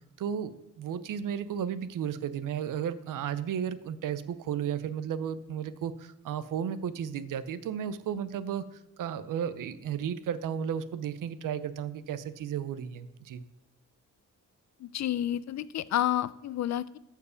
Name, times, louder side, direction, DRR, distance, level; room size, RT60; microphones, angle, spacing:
voice 1, 0.2-13.4, right 8 dB, 80° right, 14 dB, 0.6 m, -34 dB
voice 2, 14.8-17.0, left 12 dB, 60° left, 17 dB, 0.4 m, -30 dB
13.5 x 4.7 x 5.1 m, 0.86 s
wide cardioid pair, 130°, 32 cm